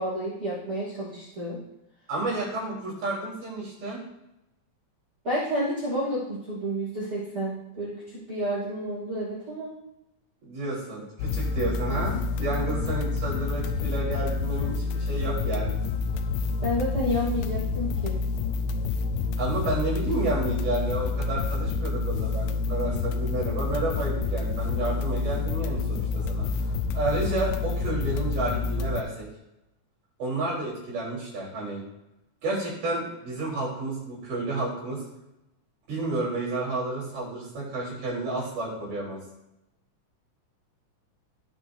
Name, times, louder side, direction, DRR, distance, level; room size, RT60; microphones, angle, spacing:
voice 1, 0.0-1.6 5.2-9.7 16.6-18.2, equal, 20° right, -8 dB, 2.7 m, -30 dB
voice 2, 2.1-4.0 10.4-15.8 19.4-26.7 26.9-29.3 30.2-31.8 32.4-35.0 35.9-39.2, right 2 dB, 80° right, -6 dB, 5.6 m, -31 dB
sound 1, 11.2-29.0, left 4 dB, 80° left, 1.9 m, -28 dB
17.0 x 5.9 x 2.7 m, 0.89 s
omnidirectional pair, 3.6 m